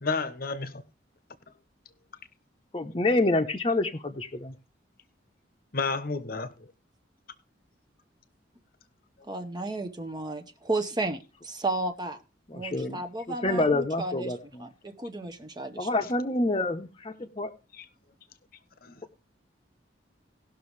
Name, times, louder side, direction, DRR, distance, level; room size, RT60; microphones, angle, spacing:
voice 1, 0.0-0.8 5.7-6.5 17.7-17.9 18.8-19.0, left 4 dB, 50° left, 1.0 m, -31 dB
voice 2, 2.7-4.5 12.5-13.0 13.4-14.7 15.8-17.5, left 2 dB, 30° left, 0.8 m, -27 dB
voice 3, 9.3-12.2 12.5-15.9, right 2 dB, 20° right, 0.8 m, -33 dB
18.5 x 6.2 x 3.2 m
head